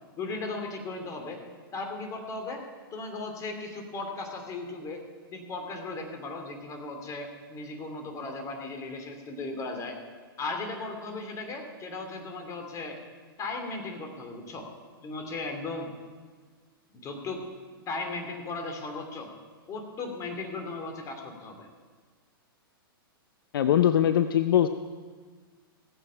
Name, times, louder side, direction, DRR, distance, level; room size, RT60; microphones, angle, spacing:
voice 1, 0.2-1.4 1.7-2.6 2.9-5.0 5.3-10.0 10.4-13.0 13.4-14.7 15.0-15.9 17.0-17.4 17.9-19.3 19.7-21.7, left 3 dB, 25° left, 3 dB, 2.7 m, -36 dB
voice 2, 23.5-24.7, left 10 dB, 65° left, 10 dB, 0.6 m, -21 dB
17.5 x 7.7 x 5.7 m, 1.5 s
hypercardioid pair, 115°, 12 cm